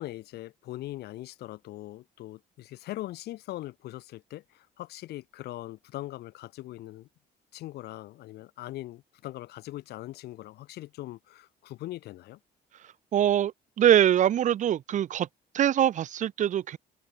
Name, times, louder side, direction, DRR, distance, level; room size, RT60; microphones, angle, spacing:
voice 1, 0.0-7.1 7.5-12.4, left 16 dB, 75° left, 1.4 m, -41 dB
voice 2, 13.1-13.5 13.8-15.3 15.5-16.8, right 10 dB, 45° right, 0.7 m, -23 dB
cardioid pair, 110°, 17 cm